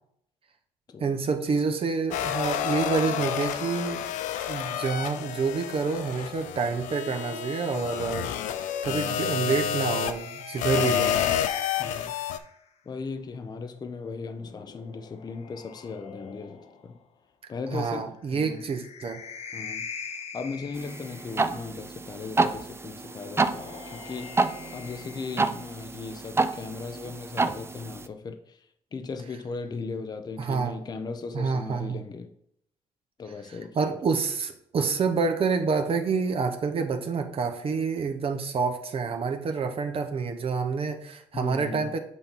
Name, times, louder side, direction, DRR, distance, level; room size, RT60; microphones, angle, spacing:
voice 1, 1.0-4.0 4.5-11.2 17.7-19.2 30.4-30.8 31.3-32.0 33.8-42.0, right 5 dB, 50° right, 0.7 m, -28 dB
sound 1, 2.1-12.4, left 9 dB, 90° left, 0.4 m, -30 dB
sound 2, 7.1-12.6 14.0-17.0 18.3-21.8 23.1-26.0, left 6 dB, 55° left, 0.9 m, -43 dB
voice 2, 11.8-12.1 12.9-17.0 17.5-18.6 19.5-24.4 24.7-32.3 33.2-33.8 41.3-41.9, left 4 dB, 35° left, 0.5 m, -37 dB
sound 3, 20.7-28.1, right 3 dB, 20° right, 0.4 m, -29 dB
8.1 x 2.8 x 5.3 m
cardioid pair, 85°, 13 cm